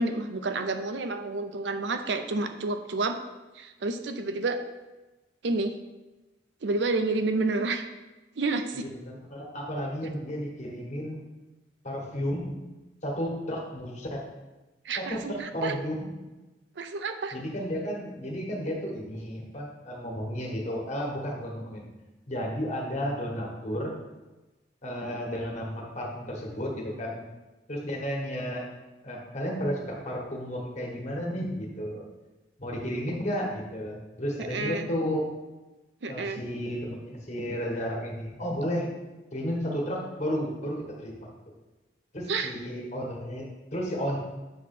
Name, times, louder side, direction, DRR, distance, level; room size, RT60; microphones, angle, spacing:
voice 1, 0.0-3.2 3.6-4.6 5.4-5.7 6.6-7.8 8.4-8.8 14.9-15.7 16.8-17.4 34.5-34.9 36.0-36.4 42.3-42.5, right 3 dB, 70° right, 8 dB, 0.6 m, -29 dB
voice 2, 8.7-11.2 11.8-12.5 13.0-14.3 14.9-16.1 17.3-21.9 22.3-23.9 24.8-27.2 27.7-28.7 29.0-32.0 32.6-35.3 36.1-38.9 39.3-41.3 42.1-44.2, equal, 40° left, -1 dB, 1.4 m, -33 dB
7.6 x 3.1 x 5.9 m, 1.1 s
head